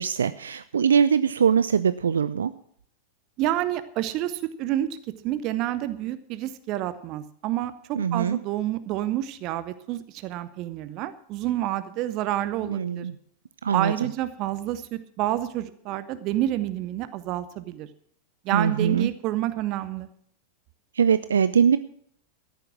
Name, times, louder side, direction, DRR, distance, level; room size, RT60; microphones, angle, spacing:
voice 1, 0.0-2.5 7.9-8.4 12.6-13.2 13.6-14.1 18.5-19.1 21.0-21.8, right 7 dB, 70° right, 15 dB, 0.4 m, -22 dB
voice 2, 3.4-5.0 5.2-13.1 13.7-17.9 18.4-20.1, right 13 dB, 40° right, 13 dB, 0.7 m, -29 dB
14.0 x 10.5 x 6.0 m, 0.65 s
figure-of-eight pair, 90°, 0 cm